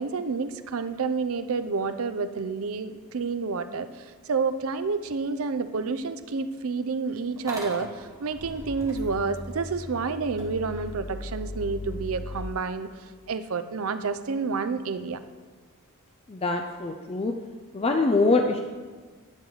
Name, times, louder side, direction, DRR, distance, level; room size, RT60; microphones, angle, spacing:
voice 1, 0.0-12.9 13.3-15.2, right 4 dB, 70° right, 11 dB, 0.6 m, -29 dB
Motor vehicle (road) / Engine starting, 7.4-12.4, left 1 dB, 15° right, 1.5 m, -38 dB
voice 2, 16.3-17.3 17.7-18.6, left 3 dB, 25° left, 4 dB, 0.5 m, -24 dB
10.5 x 4.0 x 7.5 m, 1.4 s
head